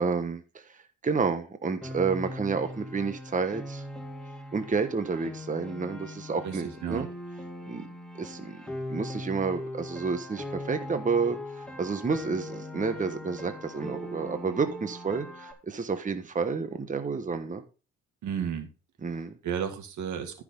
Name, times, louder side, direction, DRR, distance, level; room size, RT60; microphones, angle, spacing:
voice 1, 0.0-3.8 4.5-7.1 7.7-7.8 8.2-8.6 8.9-17.6 19.0-19.3, right 5 dB, 25° right, 8 dB, 1.2 m, -30 dB
Piano, 1.8-15.5, left 1 dB, ahead, 2.7 m, -40 dB
voice 2, 6.4-7.1 18.2-18.7 19.4-20.4, right 8 dB, 75° right, 6 dB, 2.2 m, -33 dB
14.0 x 6.1 x 3.9 m, 0.33 s
cardioid pair, 90°, 30 cm